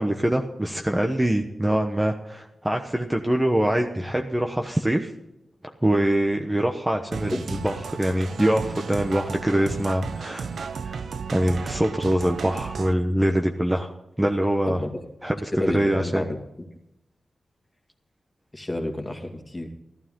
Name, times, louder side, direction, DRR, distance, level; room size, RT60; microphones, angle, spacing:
voice 1, 0.0-5.1 5.8-10.5 10.8-11.0 11.3-13.9 14.2-14.8 15.2-16.2, right 1 dB, 10° right, 3 dB, 1.1 m, -24 dB
sound 1, 7.1-12.9, right 5 dB, 80° right, 0.8 m, -34 dB
voice 2, 14.7-15.0 15.5-16.4 18.5-19.7, left 1 dB, 20° left, 3 dB, 2.3 m, -30 dB
14.5 x 12.5 x 3.8 m, 0.87 s
cardioid pair, 75°, 0 cm